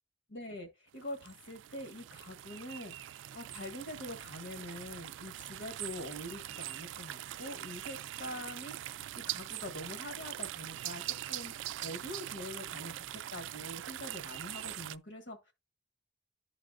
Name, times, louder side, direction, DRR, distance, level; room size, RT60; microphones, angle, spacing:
voice 1, 0.3-2.9 3.3-11.5 11.8-15.5, left 1 dB, 80° left, 1.5 m, -44 dB
sound 1, 1.0-15.0, right 13 dB, 85° right, 0.3 m, -42 dB
11.5 x 4.1 x 2.5 m
head